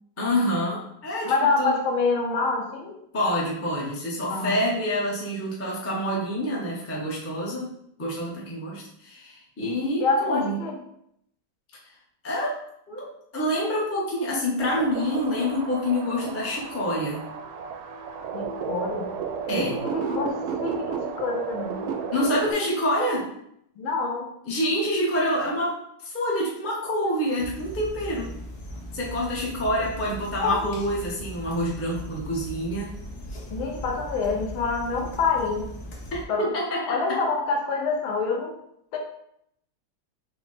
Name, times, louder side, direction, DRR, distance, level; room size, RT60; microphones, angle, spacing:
voice 1, 0.2-1.3 1.6-1.8 3.1-7.7 8.0-10.6 12.2-12.5 12.9-17.2 19.5-19.8 22.1-23.3 24.5-25.8 26.0-28.4 28.9-32.9 36.4-37.2, equal, 20° left, -4 dB, 0.3 m, -27 dB
voice 2, 1.2-3.0 4.3-4.6 10.0-10.8 18.3-19.1 19.5-21.9 23.8-24.3 30.4-30.7 33.5-35.7 36.3-36.4 36.9-38.5 38.9-39.0, left 4 dB, 85° left, 1 dB, 1.7 m, -26 dB
sound 1, 14.6-22.5, right 6 dB, 85° right, 1.4 m, -33 dB
sound 2, 27.4-36.2, equal, 60° left, 1.6 m, -38 dB
5.6 x 2.2 x 4.0 m, 0.72 s
omnidirectional pair, 2.2 m